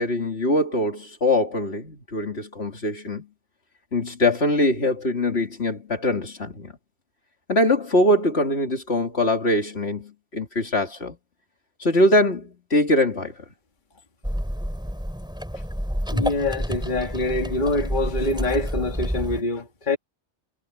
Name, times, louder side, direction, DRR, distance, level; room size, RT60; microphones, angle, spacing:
voice 1, 0.0-3.3 3.9-6.7 7.5-11.2 11.8-13.3, left 1 dB, 60° left, 3.0 m, -22 dB
sound 1, 14.2-19.4, equal, 5° right, 4.4 m, -29 dB
voice 2, 15.9-20.0, left 2 dB, 40° left, 2.0 m, -25 dB
omnidirectional pair, 1.2 m